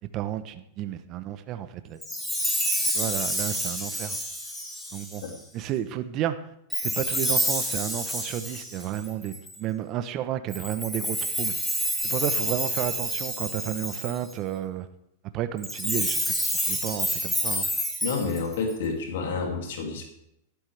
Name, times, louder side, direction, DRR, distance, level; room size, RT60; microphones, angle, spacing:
voice 1, 0.1-2.0 2.9-4.2 4.9-5.2 5.5-6.4 6.8-11.5 12.0-14.9 15.3-16.3 16.7-17.7, right 11 dB, 40° right, 10 dB, 0.8 m, -32 dB
Chime, 2.0-5.4 6.7-9.6 10.5-14.3 15.6-18.7, equal, 5° left, 2.4 m, -28 dB
voice 2, 18.0-20.0, left 4 dB, 70° left, 2 dB, 2.5 m, -29 dB
12.0 x 11.5 x 3.4 m, 0.81 s
hypercardioid pair, 135°, 0 cm